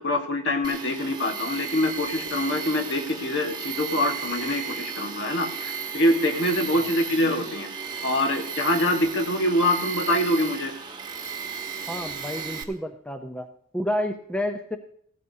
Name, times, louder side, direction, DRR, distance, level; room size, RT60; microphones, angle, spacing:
voice 1, 0.0-7.7 8.0-10.7, left 1 dB, 55° left, 5 dB, 1.5 m, -25 dB
Tools, 0.6-12.6, right 6 dB, 20° right, 1.2 m, -34 dB
voice 2, 11.9-13.5 13.7-14.8, left 1 dB, 5° left, 5 dB, 0.6 m, -30 dB
16.5 x 13.5 x 2.8 m, 0.64 s
head